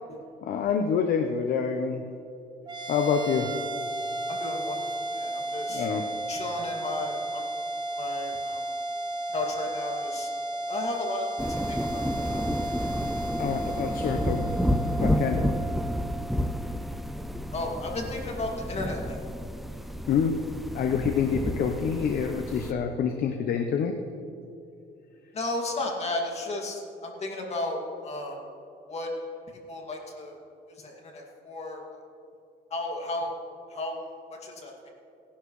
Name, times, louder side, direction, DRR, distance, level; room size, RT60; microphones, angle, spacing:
voice 1, 0.4-2.1 2.9-3.6 5.7-6.1 13.4-14.6 15.0-15.5 20.1-24.1, left 6 dB, 60° left, 5 dB, 0.9 m, -27 dB
sound 1, 2.7-17.3, right 1 dB, 25° right, 1.1 m, -34 dB
voice 2, 4.3-4.9 5.1-5.9 6.3-7.5 8.0-8.7 9.3-10.3 10.7-12.4 17.5-19.2 25.3-28.4 28.9-29.1 29.7-30.4 30.8-31.8 32.7-33.3 33.7-34.0 34.4-34.9, left 2 dB, 40° left, 1 dB, 2.4 m, -34 dB
sound 2, 11.4-22.7, equal, ahead, 0.5 m, -30 dB
17.5 x 11.5 x 3.2 m, 2.7 s
cardioid pair, 110°, 17 cm